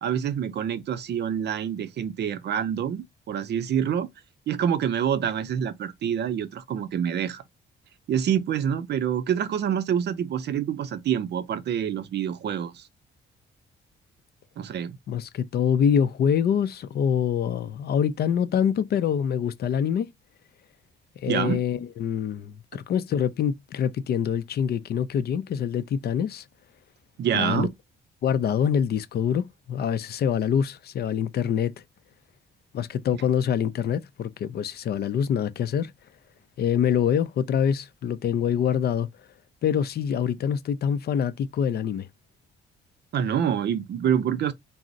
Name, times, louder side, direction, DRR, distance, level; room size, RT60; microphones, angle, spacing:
voice 1, 0.0-4.1 4.5-7.4 8.1-12.8 14.6-15.0 21.3-21.6 27.2-27.7 33.1-33.2 43.1-44.5, right 9 dB, 60° right, 0.5 m, -26 dB
voice 2, 15.1-20.1 21.2-26.4 27.3-27.7 28.2-31.7 32.7-35.9 36.6-39.1 39.6-42.1, left 8 dB, 55° left, 0.4 m, -25 dB
2.5 x 2.0 x 3.8 m
cardioid pair, 90°, 20 cm